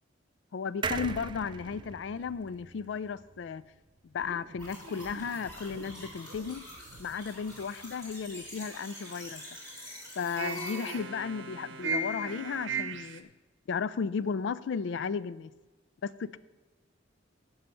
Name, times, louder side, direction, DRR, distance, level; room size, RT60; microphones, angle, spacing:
voice 1, 0.5-3.6 4.1-6.6 7.0-9.4 10.2-13.3 13.7-15.5 16.0-16.4, left 6 dB, 65° left, 17 dB, 0.3 m, -34 dB
sound 1, 0.8-4.3 4.7-4.8 5.0-5.1, right 5 dB, 25° right, 0.3 m, -40 dB
sound 2, 4.2-8.3 8.7-9.6 10.4-13.2, right 3 dB, 70° right, 0.7 m, -39 dB
sound 3, 4.6-10.9, equal, 15° left, 3.3 m, -46 dB
11.5 x 5.5 x 6.9 m, 1.2 s
head